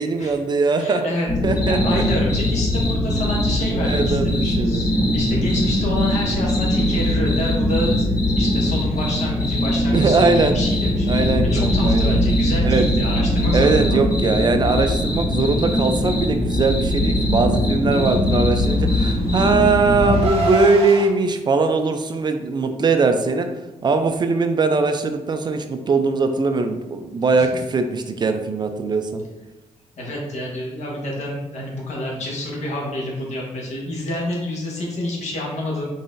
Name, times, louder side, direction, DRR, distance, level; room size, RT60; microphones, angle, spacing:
voice 1, 0.0-1.0 1.4-2.0 3.8-4.9 9.9-10.5 11.1-12.2 12.6-12.8 13.5-23.5 23.8-29.2, right 4 dB, 35° right, 7 dB, 0.4 m, -20 dB
voice 2, 0.8-1.3 1.7-8.1 8.3-14.1 27.4-27.5 30.0-35.9, left 1 dB, 70° left, -2 dB, 1.2 m, -28 dB
sound 1, 1.3-20.3, left 1 dB, ahead, 1.5 m, -21 dB
sound 2, 1.6-19.7, left 2 dB, 35° left, 0.9 m, -31 dB
Car, 18.6-21.1, right 1 dB, 55° right, 0.9 m, -27 dB
3.9 x 3.9 x 2.5 m, 1.0 s
cardioid pair, 110°, 12 cm